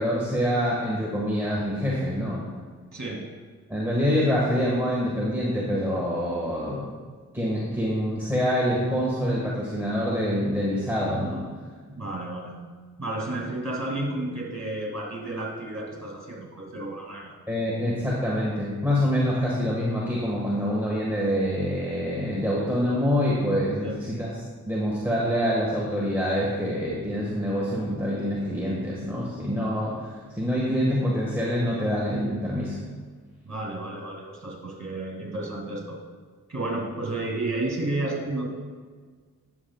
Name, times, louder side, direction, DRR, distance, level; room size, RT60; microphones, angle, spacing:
voice 1, 0.0-2.4 3.7-6.9 7.3-11.5 17.5-24.3 24.6-32.8, equal, 5° right, -5 dB, 1.6 m, -26 dB
voice 2, 2.9-3.3 11.9-12.6 13.0-17.3 23.8-23.9 33.4-36.0 36.5-38.5, right 2 dB, 50° right, -2 dB, 2.5 m, -32 dB
11.5 x 6.9 x 2.4 m, 1.5 s
cardioid pair, 50°, 35 cm